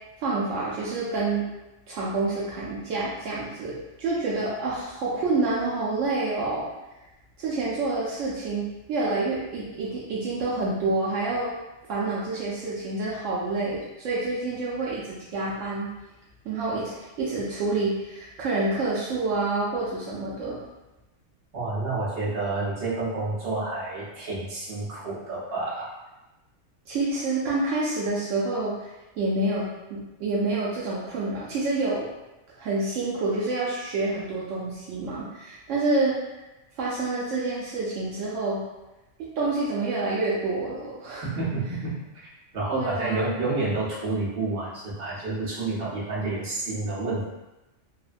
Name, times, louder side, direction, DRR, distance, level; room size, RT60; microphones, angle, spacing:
voice 1, 0.2-1.5 1.9-6.6 7.4-11.5 11.9-15.9 16.4-20.6 26.9-28.9 29.2-32.1 32.6-36.2 36.8-38.6 39.2-41.3 42.7-43.3, right 3 dB, 80° right, -6 dB, 0.9 m, -28 dB
voice 2, 21.5-25.9 41.4-41.9 42.2-47.2, right 2 dB, 55° right, -8 dB, 1.1 m, -29 dB
3.2 x 2.1 x 2.5 m, 1.0 s
omnidirectional pair, 1.3 m